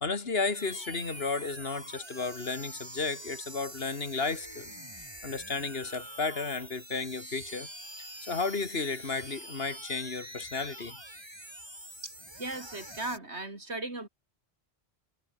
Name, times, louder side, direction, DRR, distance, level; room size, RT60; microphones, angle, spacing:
voice 1, 0.0-4.7 5.2-7.7 8.3-11.0, left 4 dB, 65° left, 2.2 m, -33 dB
sound 1, 0.5-13.2, right 1 dB, 25° right, 5.5 m, -45 dB
voice 2, 12.0-14.1, right 2 dB, 90° right, 4.7 m, -37 dB
omnidirectional pair, 1.1 m